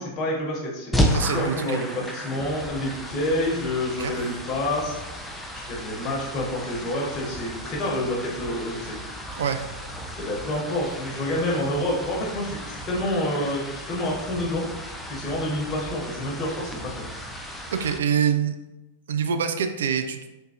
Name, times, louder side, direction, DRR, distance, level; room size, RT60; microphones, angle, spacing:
voice 1, 0.0-5.0 5.5-9.0 10.2-14.7 15.1-17.0, left 1 dB, 35° left, -3 dB, 1.1 m, -28 dB
sound 1, 0.9-18.0, equal, 5° left, 0.4 m, -33 dB
voice 2, 1.1-1.8 4.0-4.1 9.3-9.6 17.7-18.6 19.1-20.2, right 7 dB, 70° right, 8 dB, 0.3 m, -25 dB
3.6 x 2.7 x 2.8 m, 1.0 s
figure-of-eight pair, 100°, 0 cm